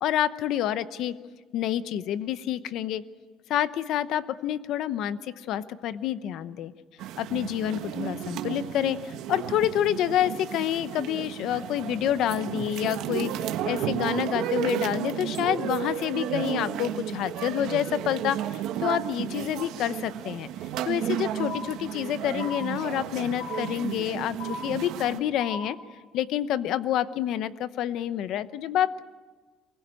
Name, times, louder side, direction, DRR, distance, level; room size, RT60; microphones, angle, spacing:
voice 1, 0.0-1.1 1.5-3.0 3.5-6.7 7.2-13.3 13.6-20.5 20.9-24.4 24.6-25.8 26.1-29.0, left 11 dB, 55° left, 14 dB, 0.8 m, -28 dB
sound 1, 7.0-25.2, right 10 dB, 60° right, 1.4 m, -33 dB
sound 2, 21.4-22.1 22.4-23.1 23.4-24.1 24.4-25.1 25.4-26.1, left 3 dB, 80° left, 3.7 m, -38 dB
24.0 x 21.0 x 9.0 m, 1.4 s
cardioid pair, 170°, 0 cm